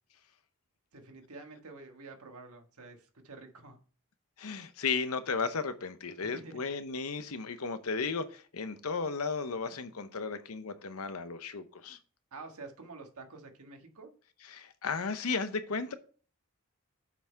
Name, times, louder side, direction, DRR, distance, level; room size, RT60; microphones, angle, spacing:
voice 1, 0.9-3.8 6.2-6.6 12.3-14.1, right 3 dB, 80° right, 4 dB, 1.5 m, -48 dB
voice 2, 4.4-12.0 14.5-15.9, left 4 dB, 80° left, 11 dB, 0.8 m, -34 dB
7.2 x 5.8 x 4.5 m, 0.40 s
head